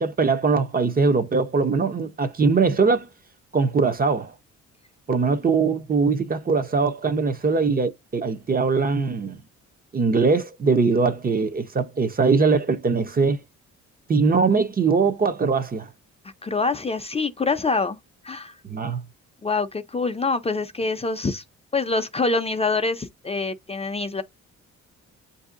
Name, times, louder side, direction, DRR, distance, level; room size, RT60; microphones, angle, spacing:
voice 1, 0.0-3.1 3.5-4.3 5.1-9.4 9.9-13.4 14.1-15.9 18.6-19.0, right 4 dB, 30° right, 0.7 m, -21 dB
voice 2, 16.4-18.0 18.2-18.5 19.4-21.4 21.7-24.2, left 3 dB, 20° left, 0.5 m, -25 dB
7.8 x 2.7 x 2.5 m
cardioid pair, 90°, 30 cm